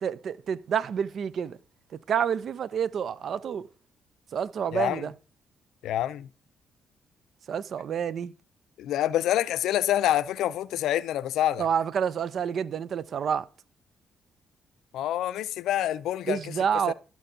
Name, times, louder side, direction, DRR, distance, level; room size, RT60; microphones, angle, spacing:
voice 1, 0.0-1.6 2.1-3.7 4.3-5.1 7.5-8.3 11.6-13.5 16.3-16.9, right 7 dB, 60° right, 0.4 m, -28 dB
voice 2, 4.7-5.1 5.8-6.3 8.8-11.7 14.9-16.5 16.9-17.0, left 12 dB, 75° left, 0.3 m, -27 dB
13.0 x 4.5 x 2.6 m
hypercardioid pair, 50°, 0 cm